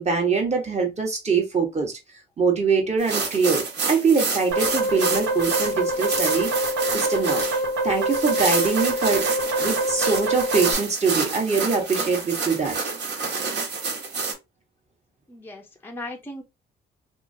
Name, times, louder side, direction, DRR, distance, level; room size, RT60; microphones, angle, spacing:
voice 1, 0.0-1.9 2.4-6.5 6.9-7.4 7.8-9.2 9.6-12.8, right 5 dB, 35° right, 1.2 m, -23 dB
sound 1, 3.0-14.3, right 4 dB, 60° right, 1.3 m, -29 dB
sound 2, 4.5-10.7, right 1 dB, 90° right, 1.2 m, -25 dB
voice 2, 15.3-16.4, left 1 dB, 10° left, 0.6 m, -37 dB
2.8 x 2.4 x 2.7 m
cardioid pair, 90°, 20 cm